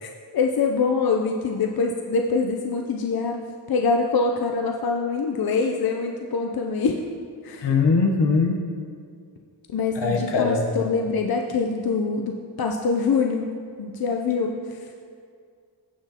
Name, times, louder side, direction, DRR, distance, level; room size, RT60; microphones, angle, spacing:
voice 1, 0.0-3.4 3.7-7.0 7.4-7.7 9.7-13.5 13.8-14.8, left 4 dB, 60° left, 2 dB, 0.6 m, -24 dB
voice 2, 7.6-8.6 9.9-10.7, left 4 dB, 80° left, 2 dB, 1.1 m, -21 dB
16.0 x 5.9 x 2.9 m, 2.2 s
wide cardioid pair, 105°, 41 cm